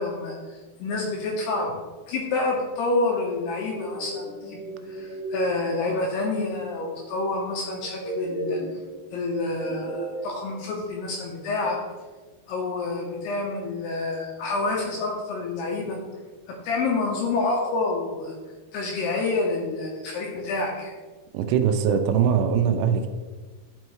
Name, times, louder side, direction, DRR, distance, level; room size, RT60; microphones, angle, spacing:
voice 1, 0.0-1.7 2.1-8.6 9.1-11.8 12.5-16.0 16.5-18.3 18.7-20.9, left 3 dB, 75° left, -1 dB, 2.6 m, -28 dB
sound 1, 3.2-10.6, right 1 dB, 55° right, 2.9 m, -35 dB
voice 2, 21.3-23.1, right 7 dB, 85° right, 7 dB, 3.0 m, -21 dB
12.5 x 5.5 x 3.1 m, 1.4 s
omnidirectional pair, 5.5 m